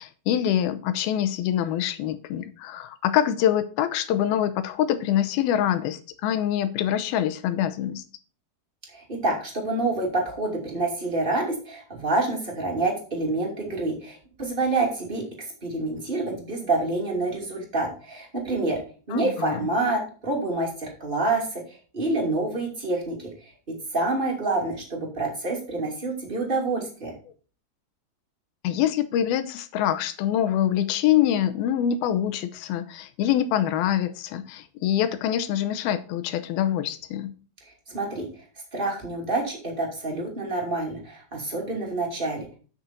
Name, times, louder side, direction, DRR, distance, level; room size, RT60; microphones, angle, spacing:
voice 1, 0.0-8.0 19.1-19.7 28.6-37.3, left 10 dB, 80° left, 10 dB, 2.5 m, -25 dB
voice 2, 8.9-15.2 15.6-18.8 19.1-23.2 23.9-27.1 37.9-38.3 38.7-42.6, right 2 dB, 15° right, 0 dB, 2.1 m, -27 dB
9.2 x 6.5 x 4.4 m, 0.38 s
omnidirectional pair, 4.7 m